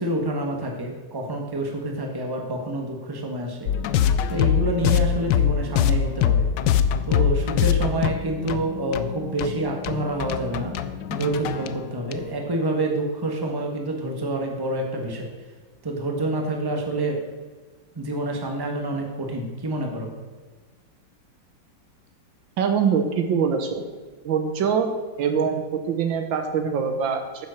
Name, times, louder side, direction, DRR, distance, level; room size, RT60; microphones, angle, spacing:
voice 1, 0.0-3.7 4.3-6.4 7.1-10.8 11.1-15.3 15.8-17.2 17.9-20.1, right 1 dB, 15° right, 2 dB, 1.2 m, -27 dB
sound 1, 3.7-12.3, left 8 dB, 75° left, 1.2 m, -23 dB
voice 2, 22.6-23.8 24.2-24.9 25.2-27.5, right 6 dB, 80° right, 6 dB, 1.8 m, -23 dB
9.1 x 7.4 x 6.4 m, 1.4 s
omnidirectional pair, 2.1 m